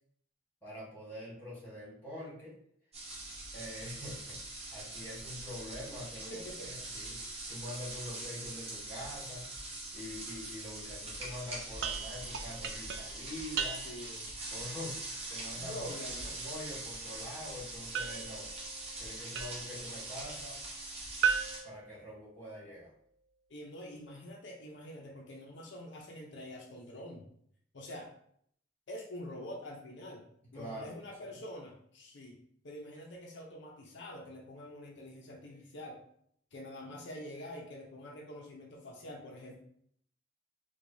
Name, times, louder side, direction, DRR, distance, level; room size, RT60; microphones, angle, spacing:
voice 1, 0.6-2.5 3.5-9.5 9.9-13.9 14.5-15.9 16.3-18.5 19.0-20.6 21.6-22.9 30.5-30.9 31.3-31.4, left 1 dB, 10° left, -5 dB, 1.4 m, -45 dB
sound 1, 2.9-21.6, right 2 dB, 35° right, 1.0 m, -43 dB
voice 2, 6.3-6.7 13.8-14.3 15.5-16.4 23.5-27.3 27.7-28.1 28.9-30.2 30.5-32.4 32.6-36.0 36.5-39.6, left 1 dB, 70° left, -1 dB, 0.6 m, -46 dB
sound 2, 11.8-14.2 17.9-19.8 21.2-22.7, right 7 dB, 65° right, 0.3 m, -36 dB
4.6 x 2.3 x 2.7 m, 0.66 s
head